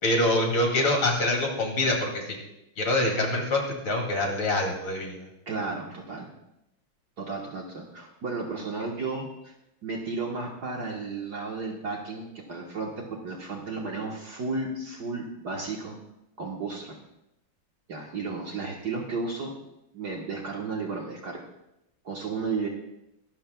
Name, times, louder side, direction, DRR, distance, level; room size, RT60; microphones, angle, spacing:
voice 1, 0.0-2.2 2.8-5.2, left 1 dB, 85° left, 1 dB, 3.5 m, -25 dB
voice 2, 5.5-6.3 7.2-9.5 9.8-12.9 13.2-16.0 16.4-17.0 17.9-19.5 19.9-21.4 22.1-22.7, right 4 dB, 55° right, -1 dB, 1.8 m, -33 dB
22.0 x 12.5 x 2.3 m, 0.87 s
omnidirectional pair, 2.2 m